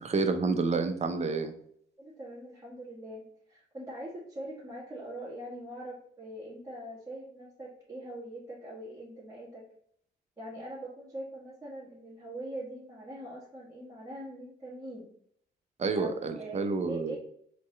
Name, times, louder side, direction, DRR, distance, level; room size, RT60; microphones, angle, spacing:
voice 1, 0.0-1.5 15.8-17.2, right 4 dB, 35° right, 7 dB, 0.6 m, -29 dB
voice 2, 2.0-9.7 10.4-15.1 16.0-17.2, right 1 dB, 15° right, -10 dB, 1.7 m, -42 dB
4.2 x 3.2 x 3.2 m, 0.66 s
cardioid pair, 90°, 20 cm